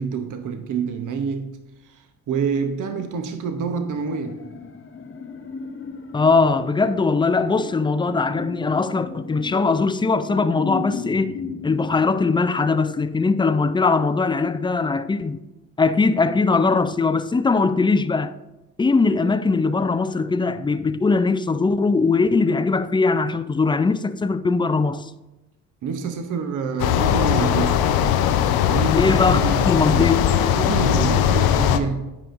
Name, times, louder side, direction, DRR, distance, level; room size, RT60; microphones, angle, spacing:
voice 1, 0.0-4.4 25.8-27.9 28.7-30.1 30.5-32.2, right 6 dB, 55° right, 0.7 m, -27 dB
sound 1, 3.9-13.0 13.3-13.4, left 4 dB, 35° left, 0.8 m, -35 dB
voice 2, 6.1-11.3 11.6-15.4 15.8-18.3 18.8-25.1 28.9-30.3, left 4 dB, 15° left, 0.4 m, -20 dB
sound 2, 26.8-31.8, left 9 dB, 75° left, 0.5 m, -19 dB
9.8 x 5.2 x 2.5 m
supercardioid pair, 55°, 36 cm